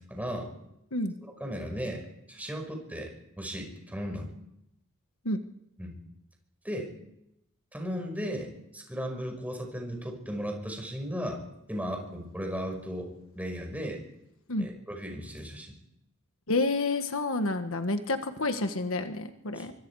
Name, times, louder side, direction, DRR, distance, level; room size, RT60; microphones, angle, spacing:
voice 1, 0.1-0.5 1.4-3.1 3.4-4.3 5.8-6.0 6.6-6.9 7.7-11.4 11.7-14.0 14.6-15.8 19.6-19.7, equal, 5° right, 2 dB, 5.6 m, -36 dB
voice 2, 16.5-19.7, left 2 dB, 65° left, 7 dB, 1.5 m, -29 dB
24.5 x 24.0 x 4.8 m, 0.83 s
head